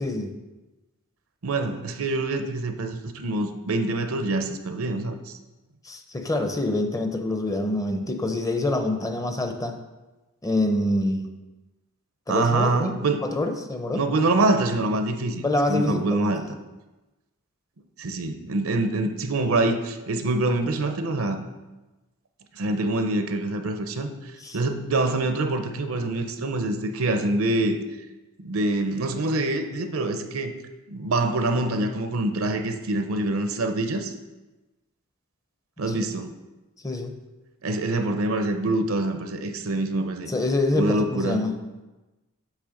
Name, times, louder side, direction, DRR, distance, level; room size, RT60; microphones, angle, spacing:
voice 1, 0.0-0.3 5.8-9.8 10.4-11.3 12.3-14.0 15.4-16.5 24.4-24.6 35.9-36.1 36.8-37.1 40.3-41.5, left 2 dB, 15° left, 5 dB, 0.6 m, -26 dB
voice 2, 1.4-5.4 12.3-13.3 13.9-16.4 18.0-21.4 22.5-24.1 24.5-27.8 28.4-30.5 30.9-34.1 35.8-36.4 37.6-40.3 40.7-41.6, right 2 dB, 70° right, 7 dB, 0.7 m, -25 dB
8.3 x 3.3 x 6.4 m, 1.1 s
head